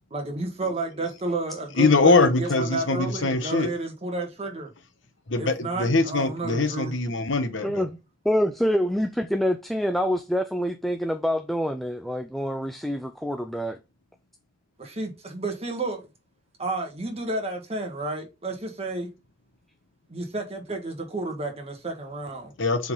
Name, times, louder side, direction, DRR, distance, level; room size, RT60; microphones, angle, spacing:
voice 1, 0.1-4.7 5.4-6.9 14.8-16.1 16.6-19.1 20.1-22.5, right 2 dB, 35° right, 1.7 m, -31 dB
voice 2, 1.8-3.7 5.3-7.8 22.6-22.9, left 3 dB, 80° left, 1.1 m, -22 dB
voice 3, 7.6-8.0 8.2-13.8, equal, ahead, 0.4 m, -26 dB
7.3 x 3.9 x 3.8 m
head